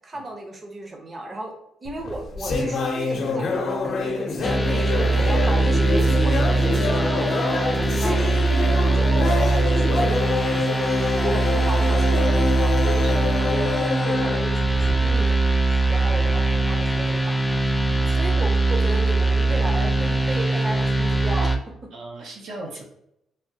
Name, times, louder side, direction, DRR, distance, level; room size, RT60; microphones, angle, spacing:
voice 1, 0.0-1.5 1.8-8.3 8.8-13.0 13.3-21.6, right 2 dB, 30° right, 1 dB, 0.7 m, -34 dB
sound 1, 1.9-15.3, left 3 dB, 60° left, 0.7 m, -26 dB
sound 2, 4.4-21.6, right 2 dB, 10° left, 0.4 m, -21 dB
voice 2, 21.9-22.8, right 2 dB, 80° right, -1 dB, 0.7 m, -39 dB
3.4 x 2.2 x 2.8 m, 0.80 s
cardioid pair, 90°, 0 cm